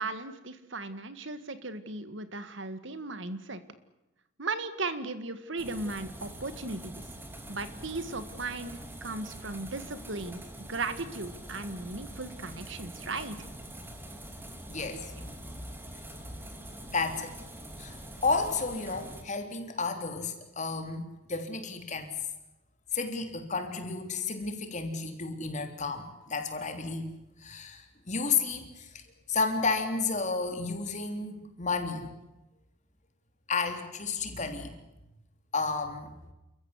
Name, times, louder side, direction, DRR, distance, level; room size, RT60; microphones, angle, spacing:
voice 1, 0.0-3.6 4.4-7.0 7.5-10.4 10.7-13.4, right 3 dB, 60° right, 12 dB, 1.9 m, -36 dB
sound 1, 5.6-19.2, right 1 dB, 10° right, 3.0 m, -45 dB
voice 2, 14.7-15.1 16.9-17.3 17.8-22.1 22.9-27.1 27.4-29.0 29.3-32.1 33.5-34.8 35.5-36.1, left 4 dB, 35° left, 6 dB, 3.4 m, -32 dB
29.5 x 15.0 x 9.8 m, 0.97 s
head